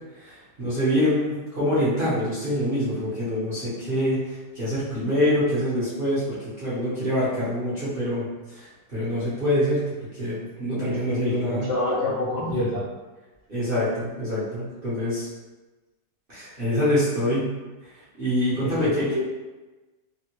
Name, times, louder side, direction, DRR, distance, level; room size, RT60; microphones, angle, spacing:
voice 1, 0.1-11.7 12.4-12.6 13.5-15.3 16.3-17.5 17.8-17.9 18.2-19.0, equal, 35° right, -11 dB, 1.0 m, -25 dB
voice 2, 10.9-12.8 18.6-19.1, left 2 dB, 55° left, -10 dB, 0.7 m, -27 dB
3.4 x 2.3 x 2.9 m, 1.2 s
omnidirectional pair, 2.0 m